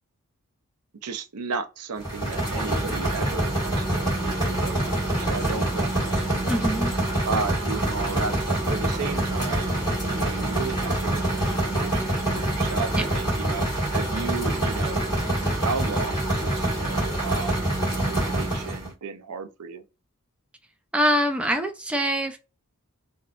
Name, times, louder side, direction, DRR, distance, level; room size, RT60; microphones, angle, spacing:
voice 1, 1.0-6.6 7.2-15.0 15.6-19.8, right 4 dB, 85° right, 0.6 m, -34 dB
sound 1, 2.0-18.9, right 1 dB, 20° left, 1.8 m, -26 dB
voice 2, 6.5-6.9 12.9-13.1 20.9-22.4, equal, 5° right, 0.4 m, -24 dB
3.6 x 2.3 x 2.4 m
head